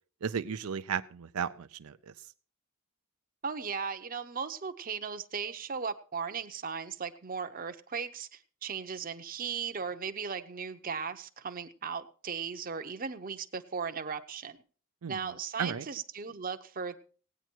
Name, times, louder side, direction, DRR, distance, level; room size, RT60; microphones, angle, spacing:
voice 1, 0.2-2.0 15.0-15.3 15.6-15.8, right 7 dB, 80° right, 9 dB, 0.5 m, -34 dB
voice 2, 3.4-14.6 15.1-17.0, right 6 dB, 40° right, 8 dB, 0.7 m, -37 dB
17.0 x 9.1 x 4.5 m, 0.41 s
head